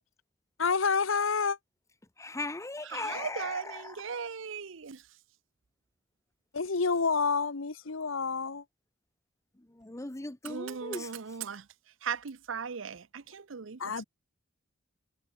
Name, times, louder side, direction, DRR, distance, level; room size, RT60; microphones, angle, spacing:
voice 1, 0.6-1.6 6.5-8.6 13.8-14.0, left 5 dB, 90° left, 1.1 m, -28 dB
voice 2, 2.2-4.0 9.7-11.1, left 2 dB, 15° left, 0.9 m, -38 dB
voice 3, 2.9-5.0 10.4-11.7 12.0-13.8, right 6 dB, 75° right, 0.7 m, -38 dB
head